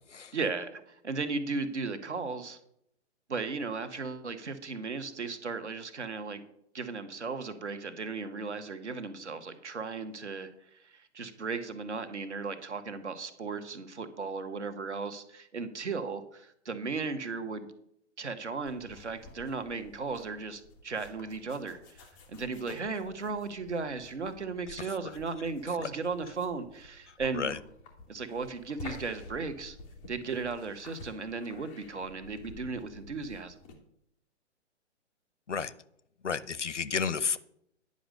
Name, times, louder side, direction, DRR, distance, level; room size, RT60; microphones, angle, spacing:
voice 1, 0.3-2.6 3.3-6.4 6.7-17.7 18.2-27.6 28.1-29.8 30.1-33.5, right 4 dB, 70° right, 10 dB, 1.3 m, -36 dB
sound 1, 18.6-33.8, left 3 dB, 5° left, 0.3 m, -51 dB
voice 2, 36.2-37.4, left 6 dB, 75° left, 17 dB, 0.7 m, -31 dB
10.0 x 5.3 x 6.5 m, 0.74 s
figure-of-eight pair, 120°, 36 cm